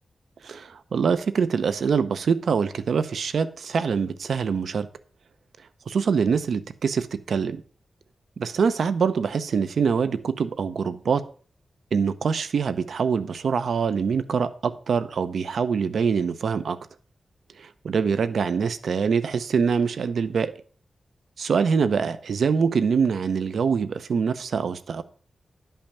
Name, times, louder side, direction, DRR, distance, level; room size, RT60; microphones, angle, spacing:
voice 1, 0.4-4.9 5.9-7.6 8.4-11.2 11.9-16.8 17.6-20.5 21.4-25.0, right 6 dB, 80° right, 12 dB, 0.7 m, -24 dB
11.5 x 5.7 x 6.9 m, 0.43 s
wide cardioid pair, 150°, 0 cm